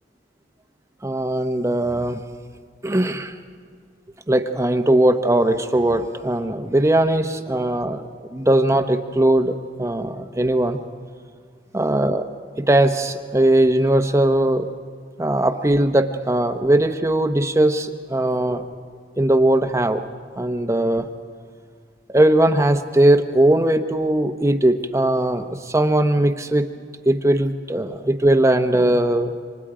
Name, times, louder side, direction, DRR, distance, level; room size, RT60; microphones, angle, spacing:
voice 1, 1.0-2.2 2.8-3.3 4.3-10.8 11.7-12.2 12.7-14.7 15.2-18.6 19.2-20.0 20.4-21.1 22.1-26.7 27.0-29.3, right 1 dB, 15° right, 7 dB, 0.9 m, -19 dB
29.0 x 25.5 x 5.0 m, 2.1 s
head